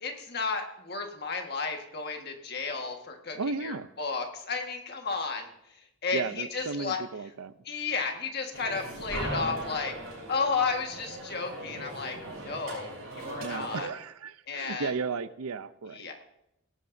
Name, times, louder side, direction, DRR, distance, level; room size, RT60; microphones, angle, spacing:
voice 1, 0.0-5.5 6.0-7.0 7.6-9.9 10.3-12.2 12.4-13.9 14.5-14.9 15.9-16.1, left 4 dB, 45° left, 3 dB, 1.6 m, -33 dB
voice 2, 3.3-3.9 6.1-7.5 13.4-16.1, right 4 dB, 90° right, 14 dB, 0.6 m, -34 dB
sound 1, 8.5-13.8, right 1 dB, 70° right, 5.5 m, -39 dB
17.5 x 11.5 x 2.7 m, 0.81 s
head